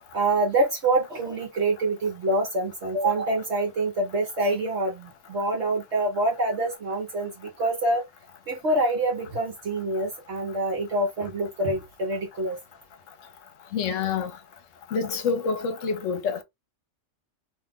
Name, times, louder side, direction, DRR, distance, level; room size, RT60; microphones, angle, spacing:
voice 1, 0.1-8.1 8.5-12.6, right 2 dB, 60° right, 1.1 m, -26 dB
voice 2, 13.7-14.3 14.9-16.4, left 5 dB, 75° left, 1.0 m, -27 dB
2.7 x 2.3 x 3.3 m
omnidirectional pair, 1.4 m